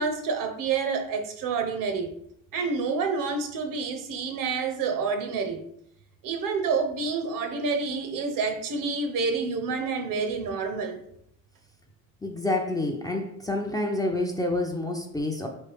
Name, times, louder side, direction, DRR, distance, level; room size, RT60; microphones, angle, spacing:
voice 1, 0.0-2.1 2.5-5.7 6.2-11.0, right 4 dB, 65° right, 6 dB, 0.7 m, -28 dB
voice 2, 12.2-15.5, left 2 dB, 10° left, 2 dB, 0.4 m, -28 dB
3.2 x 3.2 x 3.3 m, 0.72 s
cardioid pair, 95°, 36 cm